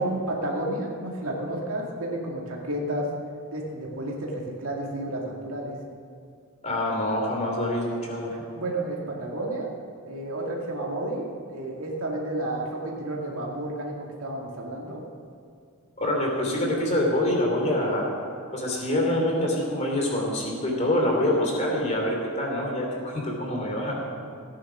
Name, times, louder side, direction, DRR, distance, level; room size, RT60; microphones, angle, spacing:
voice 1, 0.0-3.1 3.5-5.8 8.3-9.7 10.1-15.0, right 1 dB, 75° right, -2 dB, 2.2 m, -31 dB
voice 2, 6.6-8.3 16.0-18.1 18.5-23.9, left 1 dB, 30° left, -1 dB, 3.0 m, -25 dB
16.5 x 9.7 x 6.2 m, 2.4 s
head